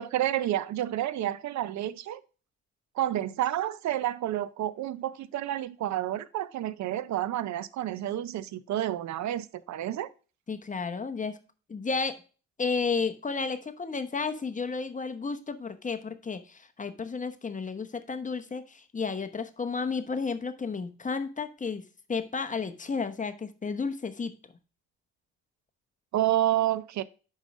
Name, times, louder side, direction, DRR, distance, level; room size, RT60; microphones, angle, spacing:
voice 1, 0.0-2.2 3.0-10.1 26.1-27.0, right 12 dB, 65° right, 0.6 m, -29 dB
voice 2, 10.5-11.4 11.7-12.2 12.6-21.8 22.1-24.3, left 4 dB, 25° left, 1.0 m, -32 dB
5.4 x 5.3 x 6.1 m
cardioid pair, 90°, 30 cm